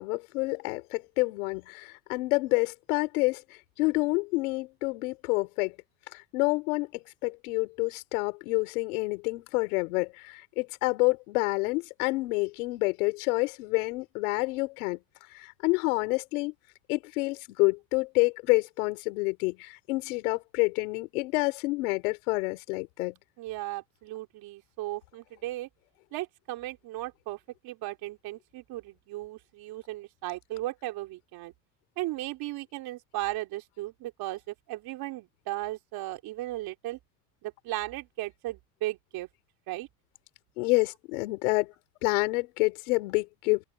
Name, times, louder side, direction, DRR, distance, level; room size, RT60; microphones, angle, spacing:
voice 1, 0.0-3.4 3.8-5.7 6.3-6.9 7.2-15.0 15.4-16.5 16.9-23.1 40.6-41.7 42.0-43.6, left 25 dB, 80° left, 4.5 m, -28 dB
voice 2, 23.4-25.7 26.1-31.5 32.0-37.0 37.4-39.3 39.7-39.9, right 17 dB, 55° right, 3.8 m, -36 dB
open air
supercardioid pair, 120°, 43 cm